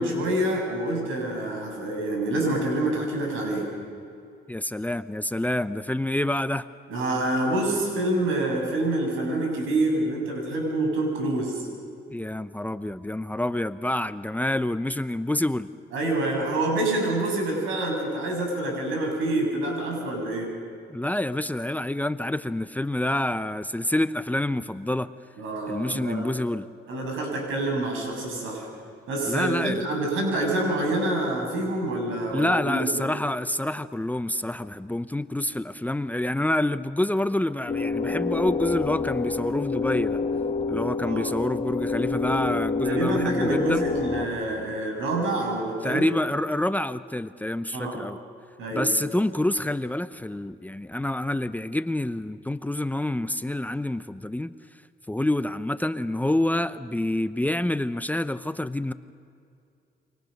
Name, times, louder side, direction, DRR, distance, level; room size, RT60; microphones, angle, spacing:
voice 1, 0.0-3.7 6.9-11.7 15.9-20.5 25.4-26.3 26.9-28.7 29.1-33.0 41.0-41.3 42.8-46.1 47.7-48.0 48.6-48.9, right 1 dB, 90° right, 1 dB, 7.7 m, -27 dB
voice 2, 4.5-6.7 12.1-15.7 20.9-25.1 25.7-26.7 29.3-29.9 32.3-40.2 40.7-43.8 45.8-48.2 48.7-54.5 55.1-58.9, left 1 dB, 10° left, 12 dB, 0.7 m, -27 dB
sound 1, 37.7-44.3, left 4 dB, 35° left, 2.0 m, -27 dB
28.5 x 24.5 x 6.7 m, 2.5 s
cardioid pair, 90°, 20 cm